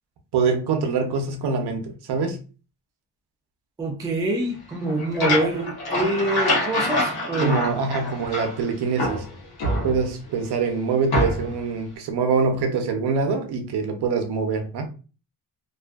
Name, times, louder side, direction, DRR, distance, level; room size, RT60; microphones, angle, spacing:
voice 1, 0.3-2.4 7.4-9.2 9.8-14.9, right 5 dB, 65° right, 0.6 m, -24 dB
voice 2, 3.8-7.6, right 2 dB, 10° right, 0.3 m, -25 dB
sound 1, 4.7-8.6 9.0-10.3 11.1-11.6, left 1 dB, 60° left, 1.0 m, -26 dB
2.5 x 2.4 x 2.3 m
wide cardioid pair, 150°, 42 cm